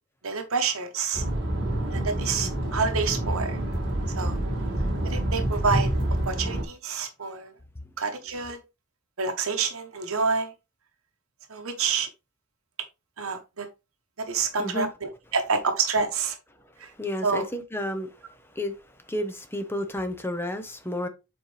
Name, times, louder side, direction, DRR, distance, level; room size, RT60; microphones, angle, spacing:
voice 1, 0.2-1.2 1.9-3.6 4.2-4.4 5.0-5.9 6.3-7.5 8.0-8.6 9.2-10.5 11.5-12.1 13.2-13.7 14.3-16.4 16.8-16.9 17.2-17.4, right 5 dB, 80° right, 1.1 m, -28 dB
sound 1, 1.1-6.6, right 1 dB, 55° right, 2.0 m, -27 dB
voice 2, 14.6-14.9 17.0-18.2 18.5-18.7 19.1-21.1, left 1 dB, 10° left, 0.8 m, -31 dB
7.3 x 4.4 x 3.3 m
head